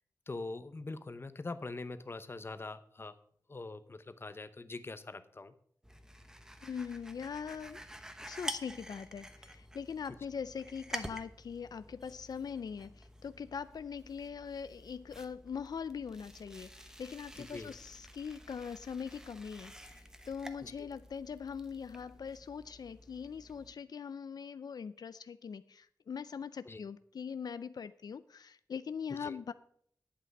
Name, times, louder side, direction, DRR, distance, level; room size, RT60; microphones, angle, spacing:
voice 1, 0.3-3.1 3.5-5.5 17.5-17.7 20.6-20.9 26.7-26.8 29.1-29.4, left 3 dB, 35° left, 12 dB, 0.8 m, -43 dB
sound 1, 5.8-23.7, equal, 10° right, 1.0 m, -49 dB
voice 2, 6.6-7.8 8.3-29.5, left 6 dB, 85° left, 14 dB, 0.4 m, -42 dB
11.5 x 8.4 x 5.3 m, 0.62 s
wide cardioid pair, 105°, 7 cm